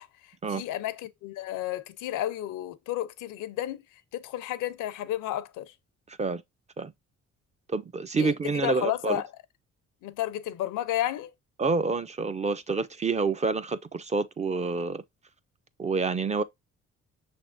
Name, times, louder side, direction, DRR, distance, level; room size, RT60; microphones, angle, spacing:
voice 1, 0.0-3.8 4.1-5.7 8.2-9.3 10.0-11.3, left 13 dB, 85° left, 0.6 m, -32 dB
voice 2, 6.1-6.4 6.8-6.9 7.7-9.2 11.6-15.0 15.8-16.4, right 4 dB, 25° right, 0.3 m, -28 dB
6.1 x 3.4 x 2.5 m
cardioid pair, 90°, 30 cm